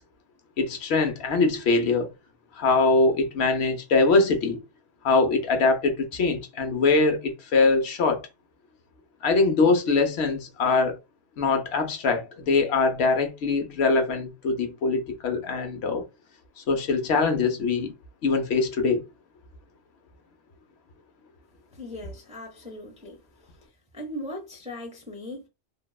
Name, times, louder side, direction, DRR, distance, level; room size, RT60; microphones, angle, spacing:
voice 1, 0.6-2.1 2.6-4.6 5.0-8.3 9.2-11.0 11.4-16.0 16.6-17.9 18.2-19.0, left 3 dB, 75° left, 0.9 m, -23 dB
voice 2, 21.7-23.2 23.9-25.5, left 1 dB, 10° right, 0.4 m, -38 dB
2.9 x 2.0 x 2.2 m
omnidirectional pair, 1.1 m